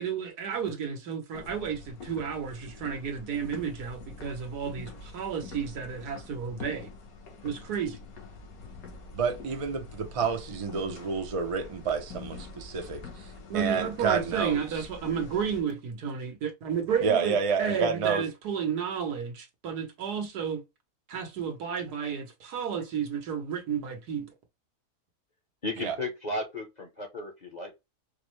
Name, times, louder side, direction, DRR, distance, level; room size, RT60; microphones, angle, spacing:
voice 1, 0.0-6.9 7.4-8.0 13.5-20.6 21.1-24.3, right 7 dB, 90° right, 1.5 m, -32 dB
sound 1, 1.3-15.6, left 3 dB, 70° left, 1.4 m, -45 dB
voice 2, 9.1-13.3 13.5-14.7 17.0-18.2 25.8-25.9, right 5 dB, 55° right, 0.3 m, -29 dB
voice 3, 25.6-27.7, left 2 dB, 40° left, 0.7 m, -34 dB
4.8 x 2.1 x 3.0 m
omnidirectional pair, 1.6 m